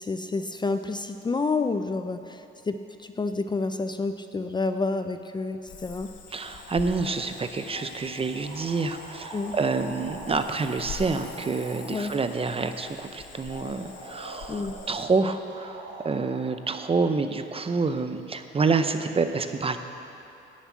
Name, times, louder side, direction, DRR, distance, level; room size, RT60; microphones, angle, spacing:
voice 1, 0.0-6.1 9.3-9.6 11.9-12.1 14.5-14.8, left 3 dB, 20° left, 9 dB, 0.4 m, -29 dB
Cricket / Frog, 5.7-15.1, left 6 dB, 70° left, 1.2 m, -44 dB
voice 2, 6.3-19.8, right 4 dB, 30° right, 9 dB, 0.7 m, -28 dB
sound 1, 8.4-12.4 13.8-14.9 15.5-16.4, right 2 dB, 85° right, 2.7 m, -43 dB
10.5 x 7.4 x 8.4 m, 2.8 s
cardioid pair, 90°, 20 cm